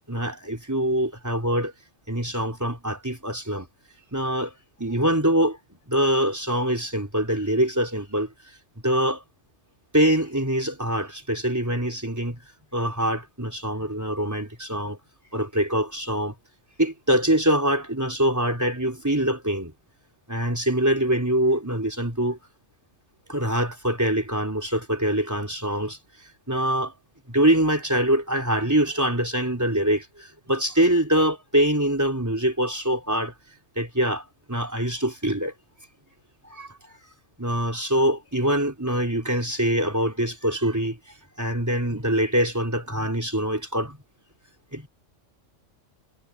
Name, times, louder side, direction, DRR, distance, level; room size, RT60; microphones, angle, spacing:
voice 1, 0.1-1.7 2.1-3.7 4.1-4.5 4.8-5.6 5.9-8.3 8.8-9.2 9.9-12.4 12.7-15.0 15.3-16.4 16.8-19.7 20.3-22.4 23.3-26.0 26.5-26.9 27.3-33.3 33.8-35.5 36.5-36.8 37.4-41.0 41.4-44.0 44.7-44.9, right 1 dB, 15° right, 4.0 m, -24 dB
omnidirectional pair, 1.3 m